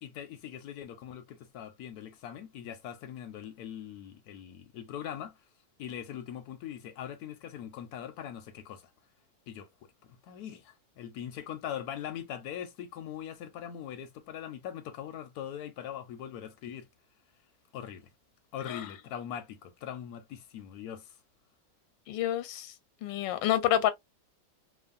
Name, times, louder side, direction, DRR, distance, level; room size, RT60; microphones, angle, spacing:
voice 1, 0.0-5.4 5.8-8.9 9.5-9.7 10.1-16.9 17.7-18.1 18.5-21.2, left 9 dB, 70° left, 0.9 m, -41 dB
voice 2, 22.1-22.7 23.0-23.9, left 12 dB, 90° left, 1.3 m, -28 dB
3.0 x 2.2 x 2.4 m
omnidirectional pair, 1.9 m